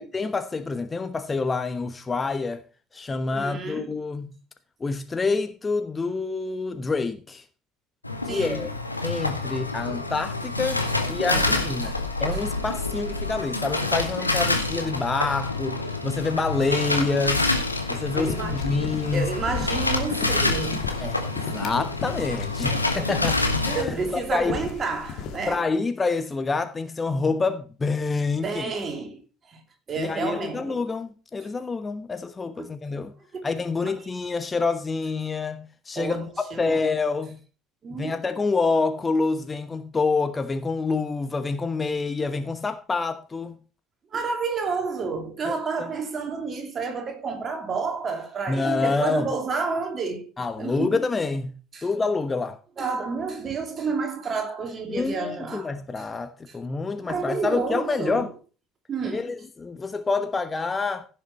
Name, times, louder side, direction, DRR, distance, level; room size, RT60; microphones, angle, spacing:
voice 1, 0.0-2.6 2.9-4.4 4.8-7.4 8.2-8.7 9.0-10.8 11.1-17.5 17.9-19.3 21.0-24.6 25.5-28.7 30.0-33.1 33.4-36.3 36.6-37.4 37.9-43.6 45.4-45.9 48.5-49.3 50.4-51.5 51.8-52.6 54.9-58.3 59.1-61.1, left 4 dB, 25° left, 1.1 m, -27 dB
voice 2, 3.3-4.0 8.3-8.7 11.3-12.0 12.3-12.4 14.3-14.4 18.1-18.6 19.1-20.9 23.7-25.6 28.4-29.6 29.9-30.8 32.6-32.7 33.3-33.5 33.8-33.9 35.9-36.9 37.8-38.1 44.1-50.2 50.6-51.0 51.7-51.9 52.8-56.0 56.5-56.6 57.0-58.3 58.9-59.3, right 4 dB, 35° right, 2.9 m, -30 dB
sound 1, 8.0-23.8, left 2 dB, 90° left, 1.2 m, -27 dB
sound 2, 18.1-25.5, left 6 dB, 55° left, 1.9 m, -36 dB
16.0 x 6.8 x 4.3 m
figure-of-eight pair, 60°, 0 cm